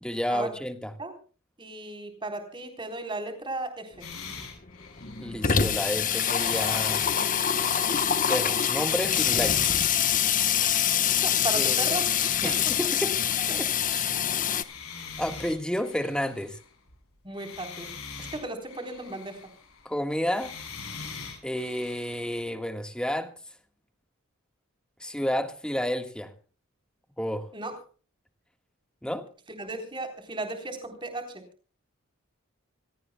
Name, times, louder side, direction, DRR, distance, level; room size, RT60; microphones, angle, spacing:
voice 1, 0.0-0.9 5.2-7.0 8.2-9.7 11.5-11.9 12.4-13.2 13.6-13.7 13.9-14.1 15.2-16.6 19.8-20.5 21.4-23.3 25.0-26.3 27.2-27.5 29.0-29.3, equal, 5° left, 7 dB, 1.5 m, -30 dB
voice 2, 1.6-3.9 10.6-10.7 11.2-12.0 13.5-13.6 17.2-17.9 18.2-19.4 27.5-27.8 29.6-31.4, right 2 dB, 20° right, 6 dB, 3.9 m, -35 dB
sound 1, 4.0-5.7 6.2-8.5 9.0-11.4 11.7-14.0 14.5-17.0 17.3-19.9 20.3-22.4, left 5 dB, 85° left, 7.8 m, -43 dB
Water tap faucet / Sink (filling or washing), 4.0-4.1 4.4-4.5 4.7-14.6, left 8 dB, 35° left, 1.0 m, -25 dB
26.0 x 17.5 x 2.2 m, 0.39 s
head